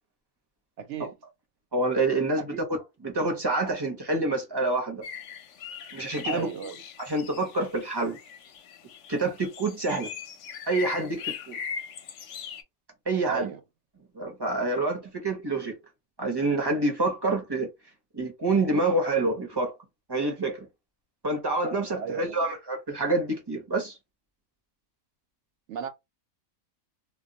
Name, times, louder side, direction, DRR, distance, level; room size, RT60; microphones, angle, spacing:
voice 1, 0.8-1.2 2.5-2.7 6.3-6.8 13.2-13.6 21.9-22.6 25.7-25.9, right 7 dB, 65° right, 0.8 m, -35 dB
voice 2, 1.7-2.6 3.0-5.0 5.9-6.5 7.0-8.2 9.1-10.1 10.7-11.6 13.1-13.5 14.1-15.7 16.2-17.7 18.1-19.7 20.1-20.7 21.2-24.0, right 2 dB, 25° right, 0.5 m, -27 dB
sound 1, 5.0-12.6, left 7 dB, 65° left, 0.8 m, -39 dB
2.3 x 2.2 x 3.7 m
omnidirectional pair, 1.5 m